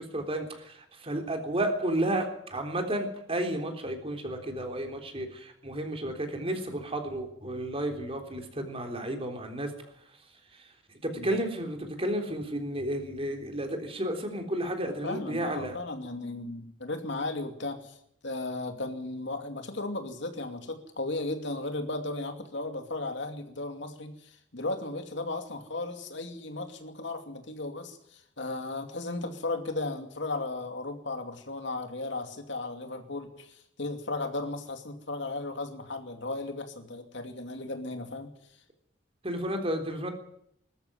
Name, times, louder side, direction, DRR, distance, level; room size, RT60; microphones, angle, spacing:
voice 1, 0.0-9.7 10.5-10.6 11.0-15.8 39.2-40.1, right 1 dB, 30° right, 4 dB, 3.7 m, -32 dB
voice 2, 15.0-18.0 18.2-38.3, left 2 dB, 65° left, 6 dB, 2.6 m, -35 dB
21.0 x 13.5 x 10.0 m, 0.73 s
head